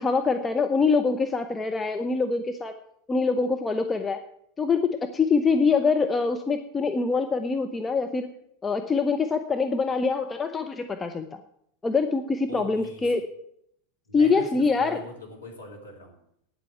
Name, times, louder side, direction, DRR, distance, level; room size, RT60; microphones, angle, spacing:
voice 1, 0.0-2.7 3.1-4.2 4.6-8.3 8.6-11.4 11.8-13.2 14.1-15.0, left 4 dB, 20° left, 6 dB, 0.9 m, -24 dB
voice 2, 12.5-13.1 14.1-16.2, left 1 dB, 85° left, 0 dB, 3.0 m, -42 dB
9.8 x 7.7 x 9.2 m, 0.72 s
figure-of-eight pair, 85°, 0 cm